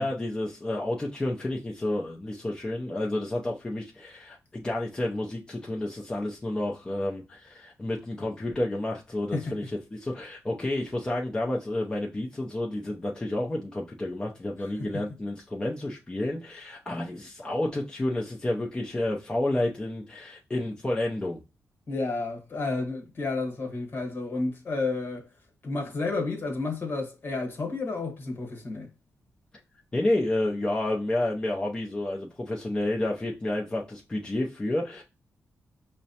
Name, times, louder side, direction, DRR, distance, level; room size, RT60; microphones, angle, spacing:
voice 1, 0.0-9.6 9.9-21.4 29.9-35.0, left 1 dB, 15° left, 0.5 m, -30 dB
voice 2, 14.6-15.0 21.9-25.3 25.6-28.9, left 3 dB, 45° left, 1.2 m, -31 dB
5.8 x 2.1 x 2.7 m
wide cardioid pair, 135°, 5 cm